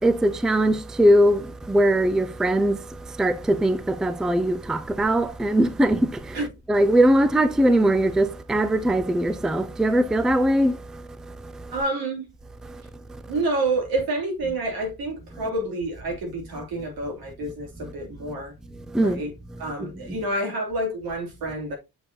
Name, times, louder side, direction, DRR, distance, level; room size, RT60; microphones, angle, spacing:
voice 1, 0.0-6.4 6.7-11.7 12.6-13.3 18.9-19.2 19.8-19.9, right 1 dB, ahead, 0.4 m, -21 dB
voice 2, 11.7-12.3 13.3-18.5 19.0-19.3 19.6-21.8, right 2 dB, 85° right, 2.9 m, -28 dB
6.9 x 6.9 x 2.7 m
cardioid pair, 150°, 35 cm